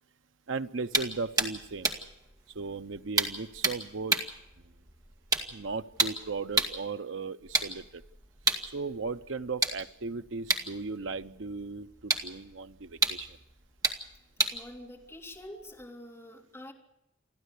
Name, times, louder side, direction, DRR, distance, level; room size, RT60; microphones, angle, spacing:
voice 1, 0.5-1.9 2.5-4.2 5.5-8.0 8.7-13.4, right 4 dB, 75° right, 11 dB, 0.8 m, -36 dB
sound 1, 0.9-6.9 7.4-15.8, right 3 dB, 20° right, 1.9 m, -33 dB
voice 2, 14.5-16.7, left 1 dB, 15° left, -2 dB, 3.3 m, -46 dB
29.0 x 12.0 x 8.4 m, 0.89 s
head